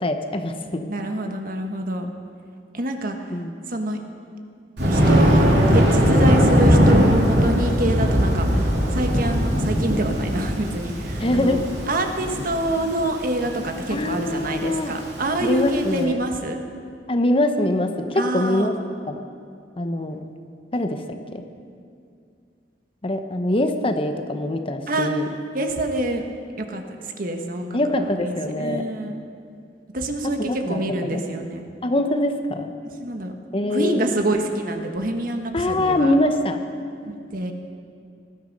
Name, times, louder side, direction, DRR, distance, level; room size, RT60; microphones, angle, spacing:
voice 1, 0.0-0.9 3.3-3.5 11.2-11.6 13.9-14.9 15.4-16.2 17.1-18.7 19.1-19.2 19.8-20.2 20.7-21.0 21.3-21.4 23.0-25.3 27.7-28.8 30.4-31.2 31.8-32.7 33.5-34.0 35.5-36.6, left 1 dB, 30° left, 6 dB, 0.9 m, -23 dB
voice 2, 0.9-2.1 2.7-3.2 3.7-4.0 4.9-16.6 18.1-18.7 24.9-25.1 25.5-26.2 26.6-26.8 27.2-29.2 29.9-31.6 33.0-33.3 33.7-36.1 37.1-37.5, right 1 dB, 50° right, 4 dB, 1.4 m, -26 dB
Thunder, 4.8-15.9, equal, 70° right, 3.1 m, -20 dB
19.0 x 13.0 x 5.3 m, 2.3 s
head